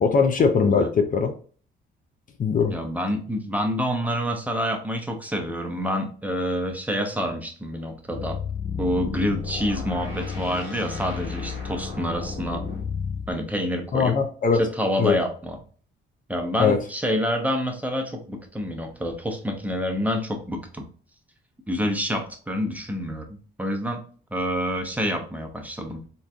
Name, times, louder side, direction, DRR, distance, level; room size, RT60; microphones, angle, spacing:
voice 1, 0.0-1.3 2.4-2.7 13.9-14.6 15.0-15.1 16.6-16.8, left 5 dB, 45° left, 6 dB, 0.5 m, -20 dB
voice 2, 2.7-8.4 8.8-12.6 13.3-14.2 14.5-15.6 16.3-20.9 21.7-24.0 24.3-26.1, equal, 10° right, 3 dB, 0.7 m, -27 dB
sound 1, 8.1-13.3, left 5 dB, 80° left, 1.3 m, -32 dB
3.7 x 2.6 x 2.3 m, 0.42 s
cardioid pair, 90°, 20 cm